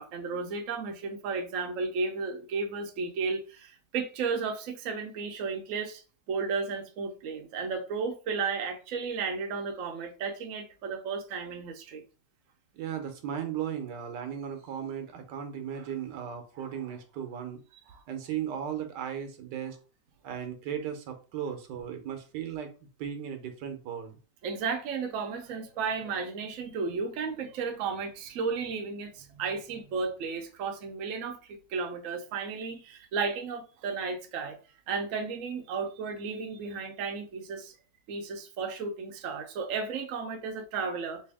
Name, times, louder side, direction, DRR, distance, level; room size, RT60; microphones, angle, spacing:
voice 1, 0.0-6.0 6.3-12.0 24.4-34.6 34.9-37.7 38.1-41.2, right 5 dB, 65° right, 0.9 m, -33 dB
voice 2, 12.7-17.6 17.9-19.8 20.2-22.7 23.0-24.2, right 9 dB, 80° right, 1.3 m, -36 dB
3.3 x 2.7 x 3.4 m
omnidirectional pair, 1.9 m